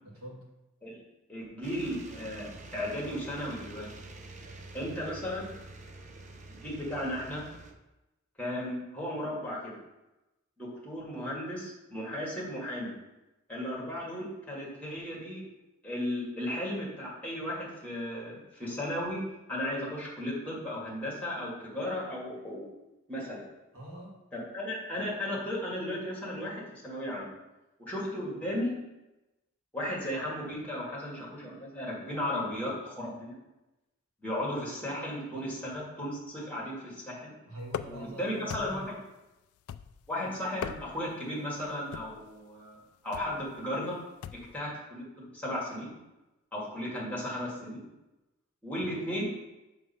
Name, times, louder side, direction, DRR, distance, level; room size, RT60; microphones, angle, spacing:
voice 1, 0.0-0.6 23.7-24.2 35.3-35.5 37.5-38.8, right 1 dB, 80° right, -2 dB, 1.7 m, -44 dB
voice 2, 1.3-3.9 4.7-5.5 6.5-7.5 8.4-9.8 10.6-12.9 13.5-15.4 15.8-19.2 19.5-22.6 23.1-23.4 24.3-27.3 27.9-28.7 29.7-33.4 34.2-37.3 37.9-39.0 40.1-42.8 43.0-44.0 44.5-45.9 46.5-47.8 48.6-49.2, left 1 dB, 5° left, -5 dB, 1.9 m, -35 dB
sound 1, 1.6-7.7, right 2 dB, 35° right, 0.5 m, -47 dB
sound 2, 37.7-38.1 38.5-39.0 39.7-40.1 40.5-41.1 41.9-42.3 43.1-43.4 44.2-44.6, left 8 dB, 90° left, 0.3 m, -39 dB
6.4 x 3.2 x 5.6 m, 1.0 s
head